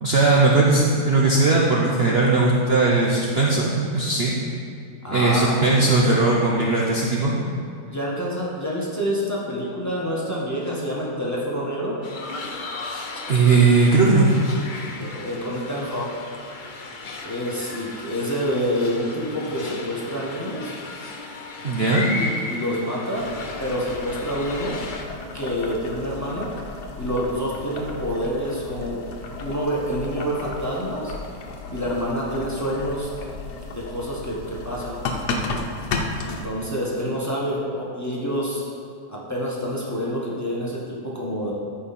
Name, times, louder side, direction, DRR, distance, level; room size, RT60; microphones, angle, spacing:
voice 1, 0.0-4.3 5.1-7.3 13.3-14.4 21.6-22.1, right 3 dB, 45° right, -3 dB, 0.9 m, -18 dB
voice 2, 5.0-6.0 7.9-12.0 15.0-16.2 17.2-20.8 21.9-23.3 23.6-24.8 25.3-26.5 27.0-29.0 29.4-31.1 31.7-33.1 33.7-35.0 36.2-38.6 39.1-41.5, equal, 10° left, -5 dB, 1.4 m, -27 dB
sound 1, 12.0-25.0, left 3 dB, 50° left, 0.6 m, -35 dB
Boiling, 23.2-36.4, left 3 dB, 75° left, 1.4 m, -34 dB
13.5 x 5.6 x 4.3 m, 2.4 s
omnidirectional pair, 1.8 m